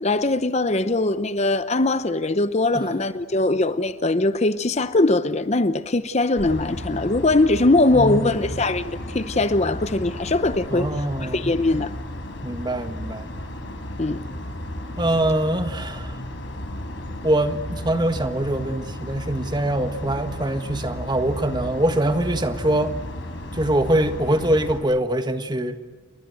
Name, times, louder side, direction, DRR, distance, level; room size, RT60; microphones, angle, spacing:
voice 1, 0.0-10.9 11.2-11.9 14.0-14.2, left 2 dB, 30° left, 0.8 m, -21 dB
sound 1, 6.4-24.8, left 1 dB, 60° left, 4.5 m, -34 dB
voice 2, 7.9-8.2 8.5-8.6 10.7-11.5 12.4-13.4 15.0-16.1 17.2-22.9 23.5-25.8, right 1 dB, 20° right, 1.6 m, -23 dB
29.5 x 23.0 x 7.8 m
head